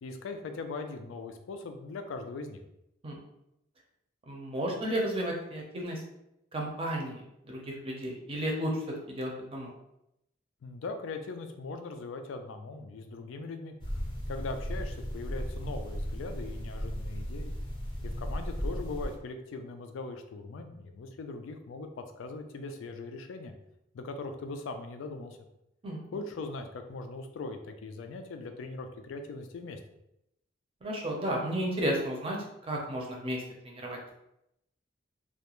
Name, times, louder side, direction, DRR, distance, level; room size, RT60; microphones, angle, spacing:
voice 1, 0.0-2.6 10.6-13.7 14.3-17.5 18.0-23.5 23.9-25.4 26.1-29.8, left 3 dB, 85° left, 7 dB, 0.3 m, -40 dB
voice 2, 4.3-6.0 6.5-9.7 25.8-26.2 30.8-34.1, right 1 dB, 30° right, 0 dB, 0.5 m, -33 dB
sound 1, 13.8-19.2, equal, 25° left, 0.5 m, -36 dB
2.3 x 2.1 x 2.9 m, 0.83 s
head